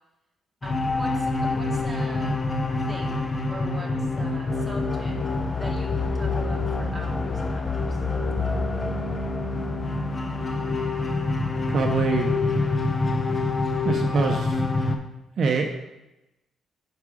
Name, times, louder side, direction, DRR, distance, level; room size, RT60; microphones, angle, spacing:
sound 1, 0.6-15.0, left 3 dB, 30° left, 0.6 m, -26 dB
voice 1, 0.6-2.4 2.9-5.3 5.6-8.0, right 1 dB, 10° right, -2 dB, 1.4 m, -41 dB
voice 2, 11.7-12.3 13.8-14.6 15.4-15.7, right 4 dB, 55° right, 3 dB, 0.5 m, -24 dB
4.8 x 4.7 x 4.8 m, 0.96 s
cardioid pair, 90°, 0 cm